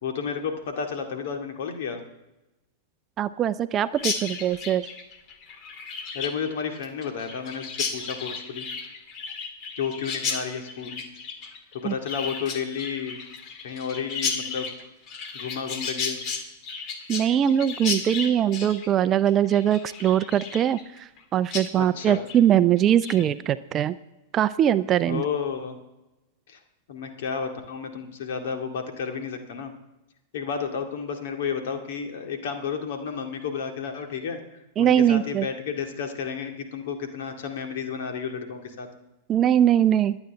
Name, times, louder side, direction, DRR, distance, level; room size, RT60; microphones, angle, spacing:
voice 1, 0.0-2.0 6.1-8.7 9.8-11.0 11.7-13.2 13.6-14.7 15.3-16.2 21.8-22.2 25.1-25.8 26.5-26.6 26.9-29.7 30.3-38.9, left 6 dB, 60° left, 4 dB, 2.1 m, -32 dB
voice 2, 3.2-4.9 11.8-11.9 17.1-24.0 24.3-25.2 34.8-35.5 39.3-40.2, right 10 dB, 30° right, 15 dB, 0.5 m, -22 dB
Chirp tweet, 4.0-21.2 21.5-21.7 22.0-22.4 22.8-23.2, left 5 dB, 40° left, 1.9 m, -34 dB
22.5 x 9.0 x 3.5 m, 0.98 s
figure-of-eight pair, 95°, 0 cm